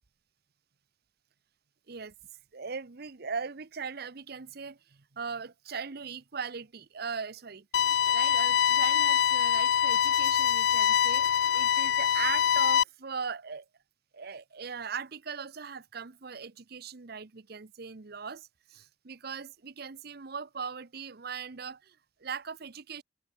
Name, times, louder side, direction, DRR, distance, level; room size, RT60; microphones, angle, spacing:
voice 1, 2.5-13.6 14.1-23.0, right 6 dB, 60° right, 0.9 m, -39 dB
sound 1, 7.7-12.8, left 9 dB, 70° left, 0.4 m, -24 dB
head